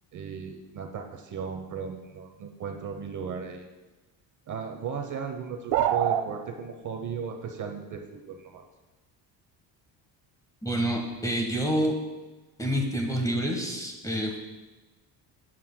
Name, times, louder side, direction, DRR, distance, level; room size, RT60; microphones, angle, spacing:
voice 1, 0.1-3.7 4.5-8.6, right 6 dB, 45° right, 4 dB, 0.9 m, -36 dB
sound 1, 5.7-6.3, right 11 dB, 65° right, 0.6 m, -23 dB
voice 2, 10.6-11.9 12.6-14.4, equal, 10° left, 2 dB, 1.2 m, -27 dB
14.5 x 7.8 x 2.2 m, 1.2 s
cardioid pair, 120°, 43 cm